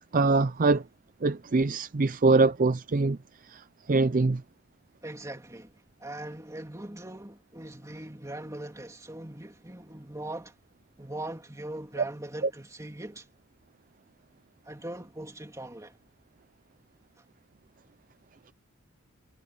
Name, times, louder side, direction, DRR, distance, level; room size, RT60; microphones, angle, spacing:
voice 1, 0.1-0.9 1.2-3.2 3.4-4.4 12.0-12.1 12.4-12.5, right 3 dB, 40° right, 0.5 m, -24 dB
voice 2, 5.0-10.5 11.0-13.3 14.6-16.0, right 1 dB, 15° right, 2.8 m, -40 dB
head